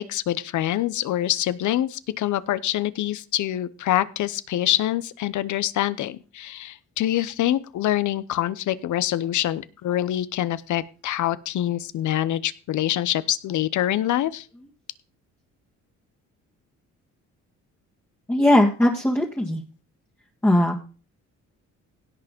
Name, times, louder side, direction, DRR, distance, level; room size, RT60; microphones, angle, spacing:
voice 1, 0.0-14.5, left 13 dB, 75° left, 17 dB, 0.9 m, -25 dB
voice 2, 18.3-19.6 20.4-20.8, left 1 dB, 5° left, -1 dB, 1.7 m, -19 dB
17.0 x 5.9 x 5.2 m, 0.35 s
cardioid pair, 90°, 30 cm